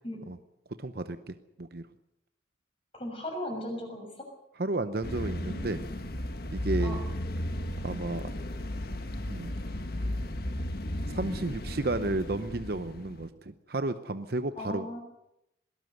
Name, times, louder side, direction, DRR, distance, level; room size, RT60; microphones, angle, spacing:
voice 1, 0.8-1.8 4.6-5.8 6.5-7.0 7.8-8.3 9.3-9.5 11.1-14.9, right 2 dB, 55° right, 10 dB, 0.8 m, -32 dB
voice 2, 3.0-4.1 6.8-7.0 14.6-15.0, left 1 dB, 30° left, 3 dB, 6.7 m, -36 dB
sound 1, 5.0-13.3, left 1 dB, 55° left, 1.7 m, -35 dB
20.5 x 18.0 x 7.9 m, 0.86 s
head